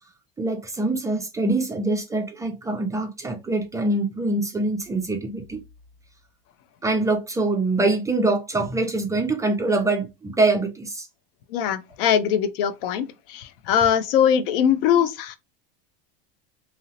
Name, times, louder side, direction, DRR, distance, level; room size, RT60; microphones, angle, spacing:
voice 1, 0.4-5.6 6.8-11.1, right 2 dB, 10° right, 0.3 m, -24 dB
voice 2, 11.5-15.4, left 8 dB, 70° left, 0.5 m, -21 dB
2.7 x 2.0 x 2.7 m
supercardioid pair, 115°, 29 cm